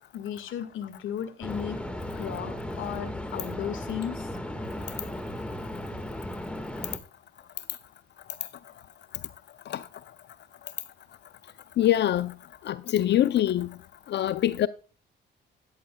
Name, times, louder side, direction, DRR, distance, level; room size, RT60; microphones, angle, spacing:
voice 1, 0.1-1.8 2.1-4.3, left 9 dB, 80° left, 1.7 m, -35 dB
sound 1, 1.4-7.0, left 1 dB, 5° left, 1.5 m, -36 dB
voice 2, 11.8-12.3 12.7-13.7 14.1-14.7, left 12 dB, 60° left, 0.5 m, -24 dB
13.5 x 11.0 x 2.2 m
cardioid pair, 90°, 20 cm